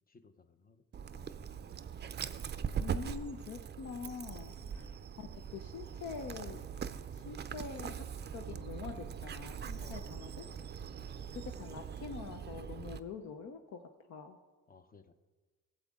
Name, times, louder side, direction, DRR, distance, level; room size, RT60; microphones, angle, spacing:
voice 1, 0.1-1.4 4.6-5.0 9.8-11.3 14.7-15.1, left 5 dB, 30° left, 9 dB, 0.7 m, -60 dB
Dog, 0.9-13.0, right 7 dB, 35° right, 0.5 m, -41 dB
voice 2, 2.8-4.9 5.2-6.6 7.1-8.1 8.3-10.4 11.3-13.8 14.1-14.4, left 6 dB, 65° left, 6 dB, 0.8 m, -45 dB
15.5 x 7.5 x 3.6 m, 1.3 s
cardioid pair, 90°, 30 cm